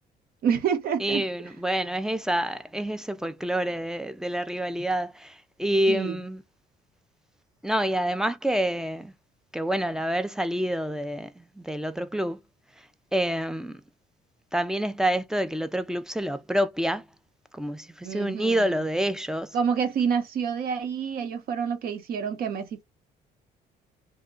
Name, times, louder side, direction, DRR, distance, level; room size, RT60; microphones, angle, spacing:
voice 1, 0.4-1.2 5.9-6.2 18.0-18.7 19.5-22.8, right 7 dB, 60° right, 0.9 m, -28 dB
voice 2, 1.0-6.4 7.6-9.1 9.5-12.4 13.1-13.8 14.5-17.1 17.5-19.6, right 1 dB, 5° right, 0.4 m, -27 dB
2.8 x 2.2 x 3.6 m
cardioid pair, 110°, 17 cm